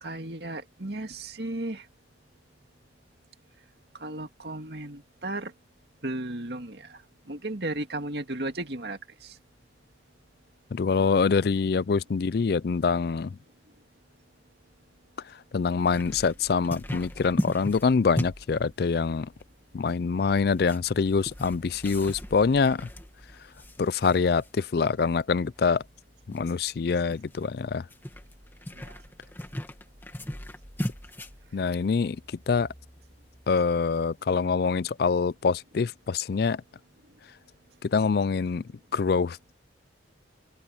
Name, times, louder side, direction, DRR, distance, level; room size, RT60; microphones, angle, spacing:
voice 1, 0.0-1.8 4.0-5.5 6.0-7.0 7.3-9.4 28.7-29.0, right 2 dB, 60° right, 2.1 m, -35 dB
voice 2, 10.7-13.4 15.3-19.3 19.7-22.9 23.8-25.8 26.3-27.9 31.5-32.7 33.5-36.6 37.8-38.6 38.9-39.5, left 5 dB, 55° left, 0.4 m, -25 dB
sound 1, 15.8-34.3, equal, 10° left, 2.1 m, -39 dB
open air
head